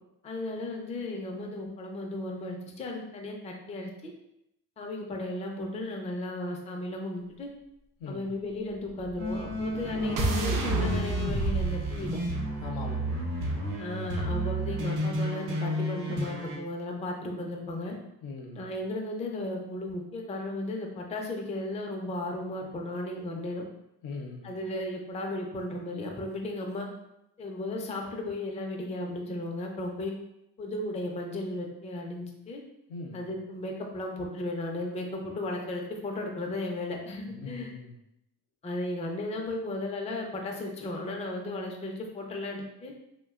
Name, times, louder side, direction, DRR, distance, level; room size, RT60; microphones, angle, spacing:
voice 1, 0.2-4.1 4.8-7.5 8.1-12.2 13.8-18.0 18.5-23.6 24.4-26.9 27.4-30.1 30.6-32.6 33.1-37.7 38.6-42.9, left 1 dB, 15° left, 1 dB, 0.4 m, -35 dB
voice 2, 8.0-8.3 12.6-13.3 18.2-18.7 24.0-24.5 32.9-33.3 37.3-38.0, left 3 dB, 85° left, 0 dB, 0.6 m, -40 dB
sound 1, 9.0-13.2, right 2 dB, 45° right, 0.5 m, -31 dB
sound 2, 9.2-16.6, equal, 90° right, 0.8 m, -32 dB
2.6 x 2.1 x 2.3 m, 0.84 s
supercardioid pair, 60°, 48 cm